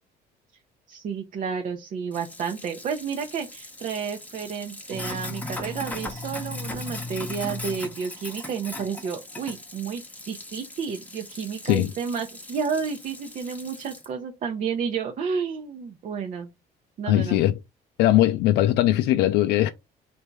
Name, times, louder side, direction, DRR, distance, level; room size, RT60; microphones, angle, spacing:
voice 1, 0.9-16.5 17.0-17.4, right 6 dB, 50° right, 0.7 m, -31 dB
Sink (filling or washing), 2.1-14.1, left 2 dB, 10° left, 0.9 m, -38 dB
voice 2, 17.1-17.6 18.0-19.7, left 14 dB, 85° left, 0.4 m, -20 dB
3.4 x 2.7 x 4.4 m
cardioid pair, 110°, 17 cm